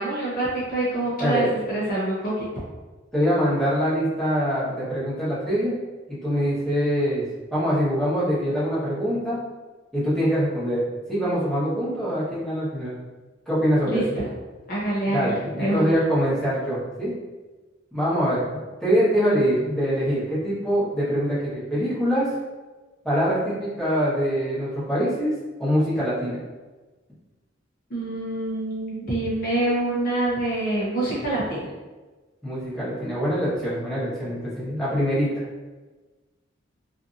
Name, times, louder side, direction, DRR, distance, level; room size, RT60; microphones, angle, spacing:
voice 1, 0.0-2.5 13.8-14.3 14.7-15.9 27.9-31.7, right 1 dB, 45° left, -6 dB, 0.6 m, -26 dB
voice 2, 3.1-5.7 6.1-9.4 9.9-10.8 11.1-12.9 13.5-14.0 15.1-17.1 17.9-22.3 23.0-25.3 25.6-26.4 32.4-35.5, equal, ahead, -11 dB, 1.0 m, -24 dB
2.7 x 2.5 x 2.5 m, 1.3 s
head